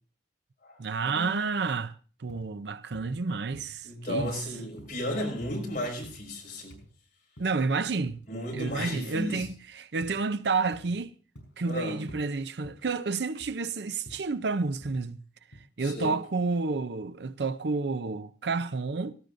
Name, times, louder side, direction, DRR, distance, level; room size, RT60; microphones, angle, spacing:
voice 1, 0.8-1.9 2.2-4.4 7.4-8.2 8.5-11.1 11.6-15.2 15.8-19.2, right 4 dB, 65° right, 0.6 m, -30 dB
sound 1, 2.3-2.5 2.9-3.2 3.5-3.9 4.2-4.4 4.8-5.0 5.4-5.6 6.0-6.3 6.7-6.9 7.4-7.6 8.1-8.3 8.7-9.0 9.4-9.6 10.0-10.2 10.7-11.0 11.4-11.7 12.1-12.3 12.6-12.9 13.4-13.6 14.1-14.3 14.8-15.1 15.5-15.6, equal, 75° left, 5.1 m, -48 dB
voice 2, 3.8-6.7 8.3-9.5 11.7-12.0 15.8-16.1, left 1 dB, 50° left, 5.3 m, -34 dB
18.0 x 15.5 x 2.6 m
head